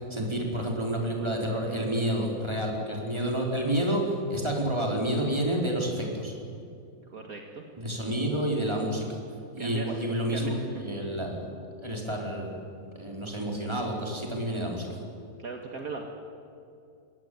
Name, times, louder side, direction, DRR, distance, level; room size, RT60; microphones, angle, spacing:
voice 1, 0.1-6.3 7.8-9.2 9.5-11.5 11.8-12.6 12.9-14.9, right 1 dB, 15° right, 0 dB, 4.7 m, -29 dB
voice 2, 7.1-7.6 9.6-10.8 15.4-16.0, right 4 dB, 55° right, 2 dB, 2.2 m, -39 dB
23.5 x 17.5 x 9.7 m, 2.6 s
omnidirectional pair, 1.8 m